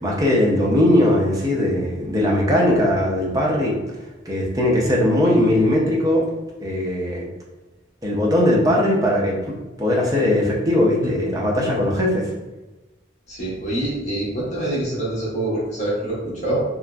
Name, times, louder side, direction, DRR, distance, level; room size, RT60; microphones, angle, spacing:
voice 1, 0.0-3.8 4.3-6.3 6.6-7.3 8.0-12.3, left 1 dB, 20° right, -2 dB, 0.5 m, -19 dB
voice 2, 13.3-16.6, right 1 dB, 35° left, -7 dB, 0.8 m, -25 dB
2.9 x 2.5 x 2.3 m, 1.1 s
head